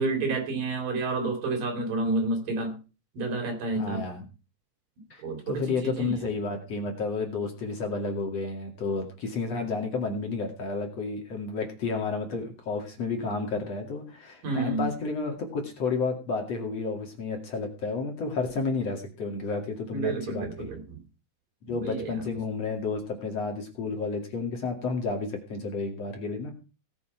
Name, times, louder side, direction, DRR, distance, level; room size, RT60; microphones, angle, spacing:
voice 1, 0.0-2.8 3.1-4.0 5.2-6.3 14.4-14.9 19.9-21.0 21.7-22.2, right 3 dB, 65° right, 4 dB, 5.3 m, -30 dB
voice 2, 3.7-4.2 5.1-20.7 21.6-26.5, left 4 dB, 50° left, 3 dB, 3.1 m, -31 dB
18.0 x 7.2 x 5.8 m, 0.33 s
omnidirectional pair, 4.2 m